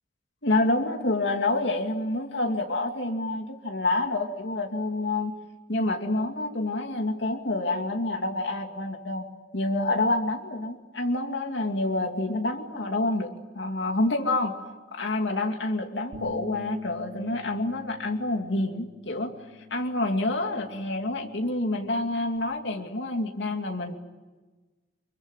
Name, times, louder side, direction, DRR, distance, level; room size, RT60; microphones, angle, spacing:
voice 1, 0.4-5.3 5.7-9.2 9.5-14.5 14.9-19.3 19.7-23.9, left 2 dB, 80° left, 3 dB, 2.7 m, -28 dB
Bass guitar, 16.1-22.4, left 3 dB, 70° right, 2.7 m, -45 dB
26.0 x 23.0 x 9.3 m, 1.2 s
head